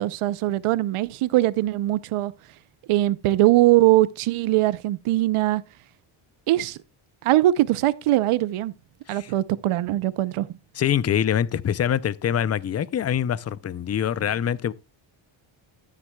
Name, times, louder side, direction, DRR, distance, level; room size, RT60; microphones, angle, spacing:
voice 1, 0.0-2.3 2.9-5.6 6.5-6.8 7.2-8.7 9.1-10.5, right 16 dB, 90° right, 0.8 m, -21 dB
voice 2, 10.7-14.7, left 9 dB, 30° left, 0.5 m, -24 dB
13.5 x 9.4 x 2.3 m
cardioid pair, 90°, 49 cm